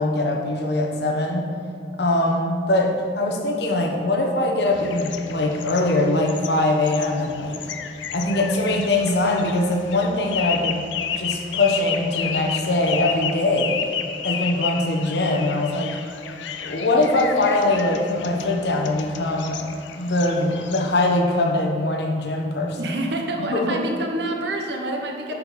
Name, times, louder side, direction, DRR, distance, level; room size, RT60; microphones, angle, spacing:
voice 1, 0.0-1.5 2.0-7.6 8.1-10.9 11.1-13.8 14.2-16.0 16.6-19.6 19.9-22.9 23.4-23.9, left 2 dB, 60° left, 2 dB, 0.9 m, -22 dB
sound 1, 4.7-21.2, left 8 dB, 75° left, 0.5 m, -32 dB
voice 2, 22.7-25.3, right 1 dB, 65° right, 2 dB, 0.9 m, -27 dB
8.7 x 5.5 x 4.2 m, 2.4 s
head